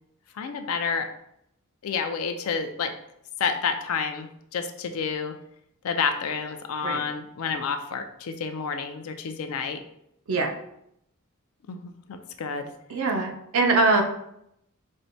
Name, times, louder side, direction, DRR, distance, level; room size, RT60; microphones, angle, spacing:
voice 1, 0.4-1.1 1.8-2.9 3.4-5.3 5.8-9.8 11.7-12.7, left 5 dB, 80° left, 7 dB, 0.4 m, -29 dB
voice 2, 12.9-14.0, right 3 dB, 75° right, 3 dB, 0.5 m, -22 dB
4.4 x 2.1 x 2.6 m, 0.76 s
head